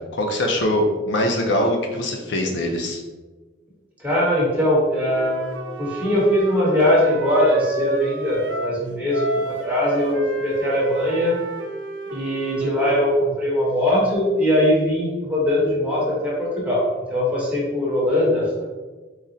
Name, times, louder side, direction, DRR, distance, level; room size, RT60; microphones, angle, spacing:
voice 1, 0.1-3.0, left 1 dB, 60° left, 2 dB, 0.5 m, -22 dB
voice 2, 4.0-5.5 5.8-11.4 12.1-18.6, left 1 dB, 5° right, -6 dB, 1.0 m, -21 dB
Wind instrument woodwind instrument, 5.0-8.8 9.1-13.1, right 3 dB, 70° right, 0.4 m, -31 dB
3.9 x 2.1 x 3.8 m, 1.3 s
head